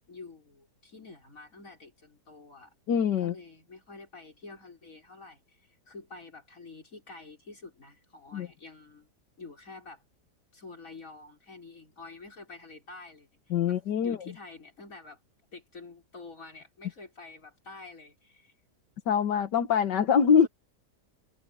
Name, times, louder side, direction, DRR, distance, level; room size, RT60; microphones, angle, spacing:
voice 1, 0.1-2.7 3.2-9.1 9.4-10.0 10.5-13.3 13.7-15.2 15.5-18.5 20.4-20.5, left 3 dB, 50° left, 5.5 m, -48 dB
voice 2, 2.9-3.3 8.3-8.5 13.5-14.2 19.1-20.5, left 7 dB, 90° left, 1.9 m, -24 dB
omnidirectional pair, 1.8 m